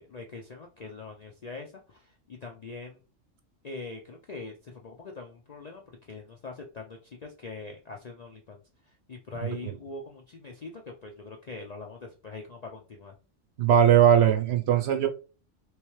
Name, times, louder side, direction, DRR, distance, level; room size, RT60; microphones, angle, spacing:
voice 1, 0.0-3.0 3.6-8.6 9.1-13.1, left 3 dB, 55° left, 1 dB, 0.4 m, -42 dB
voice 2, 13.6-15.1, right 9 dB, 65° right, 5 dB, 0.8 m, -20 dB
3.1 x 3.1 x 3.1 m, 0.34 s
omnidirectional pair, 1.3 m